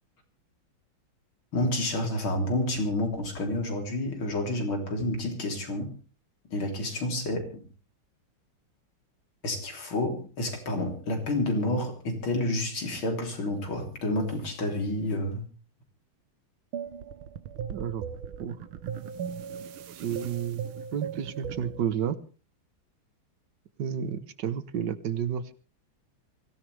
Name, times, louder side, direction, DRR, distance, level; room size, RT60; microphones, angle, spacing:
voice 1, 1.5-5.9 6.5-7.6 9.4-15.5, left 1 dB, 80° left, 3 dB, 4.4 m, -29 dB
Jazz Voktebof Bells, 16.7-21.9, right 7 dB, 85° right, 1.9 m, -37 dB
voice 2, 17.7-18.0 18.4-18.6 20.0-20.6 20.9-22.2 23.8-25.5, right 8 dB, 60° right, 13 dB, 1.7 m, -31 dB
23.5 x 16.5 x 3.4 m, 0.37 s
omnidirectional pair, 2.2 m